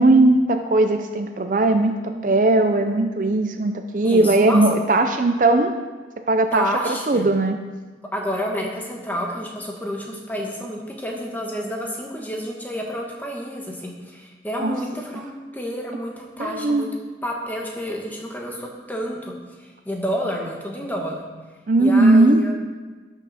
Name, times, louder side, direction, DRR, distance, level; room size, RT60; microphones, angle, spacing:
voice 1, 0.0-5.7 6.2-6.7 7.1-7.6 14.6-14.7 15.1-15.2 16.4-16.9 21.7-22.4, right 2 dB, 45° right, 7 dB, 0.5 m, -18 dB
voice 2, 4.0-4.6 6.5-7.3 8.1-15.3 15.5-16.9 17.2-21.2 21.8-22.5, equal, 10° left, -1 dB, 1.2 m, -29 dB
12.0 x 6.0 x 4.2 m, 1.3 s
head